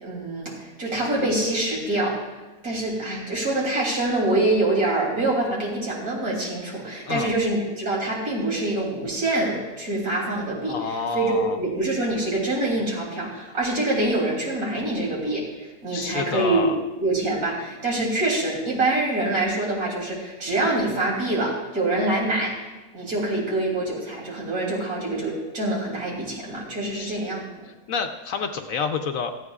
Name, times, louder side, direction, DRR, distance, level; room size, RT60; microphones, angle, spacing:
voice 1, 0.0-22.5 22.9-27.5, right 2 dB, 75° right, -2 dB, 3.5 m, -25 dB
voice 2, 10.7-11.6 15.9-16.8 26.9-27.2 27.7-29.3, left 5 dB, 70° left, 6 dB, 1.0 m, -28 dB
17.5 x 13.0 x 2.4 m, 1.1 s
omnidirectional pair, 1.6 m